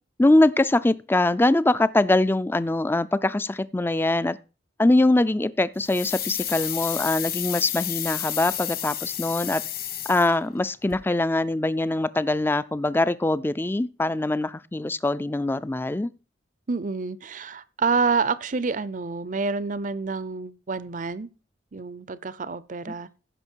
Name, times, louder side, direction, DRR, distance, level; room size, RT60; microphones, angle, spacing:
voice 1, 0.2-4.4 4.8-9.6 10.1-16.1, left 2 dB, 10° left, 0.4 m, -23 dB
sound 1, 5.8-10.6 10.9-11.0, left 12 dB, 55° left, 1.5 m, -31 dB
voice 2, 16.7-21.3 21.7-23.1, right 4 dB, 45° right, 0.6 m, -28 dB
15.5 x 5.9 x 4.6 m
head